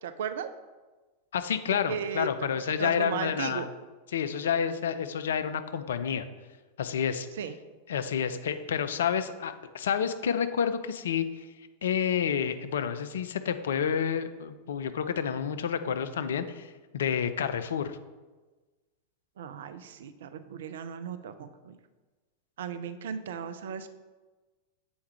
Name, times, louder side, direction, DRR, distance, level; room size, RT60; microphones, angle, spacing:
voice 1, 0.0-0.5 1.7-2.3 2.8-3.7 7.4-7.5 19.4-21.8 22.6-23.9, right 7 dB, 60° right, 10 dB, 0.4 m, -36 dB
voice 2, 1.3-3.7 4.1-6.3 6.8-7.3 7.9-11.4 11.8-18.0, left 7 dB, 60° left, 10 dB, 0.4 m, -29 dB
7.1 x 4.6 x 3.2 m, 1.3 s
figure-of-eight pair, 90°, 0 cm